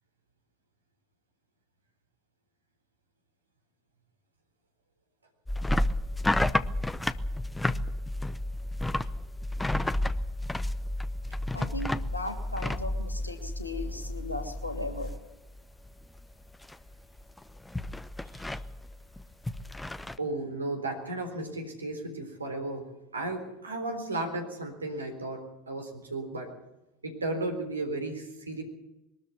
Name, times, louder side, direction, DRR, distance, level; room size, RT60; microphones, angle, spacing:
sound 1, 5.5-15.6 15.8-16.3 16.6-20.2, left 1 dB, 5° left, 0.8 m, -31 dB
voice 1, 11.5-15.1, left 2 dB, 85° left, 5 dB, 2.7 m, -37 dB
voice 2, 20.2-22.9 23.1-26.5 27.0-28.6, right 2 dB, 80° right, 4 dB, 3.9 m, -34 dB
22.0 x 13.0 x 9.3 m, 0.94 s
figure-of-eight pair, 80°, 0 cm